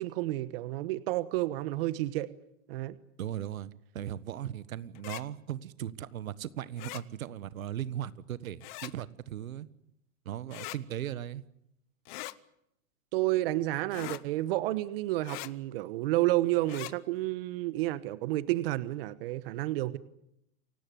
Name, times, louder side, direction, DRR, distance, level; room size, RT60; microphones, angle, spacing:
voice 1, 0.0-2.3 2.7-3.0 13.1-20.0, right 17 dB, 45° right, 15 dB, 1.2 m, -30 dB
voice 2, 3.2-9.7 10.2-11.4, right 11 dB, 80° right, 16 dB, 1.5 m, -38 dB
sound 1, 4.9-5.2 6.8-7.0 8.6-8.9 10.5-10.8 12.1-12.4 13.9-14.2 15.2-15.5 16.6-16.9, left 20 dB, 35° left, 0.9 m, -41 dB
28.5 x 17.0 x 9.6 m, 0.79 s
hypercardioid pair, 155°, 40 cm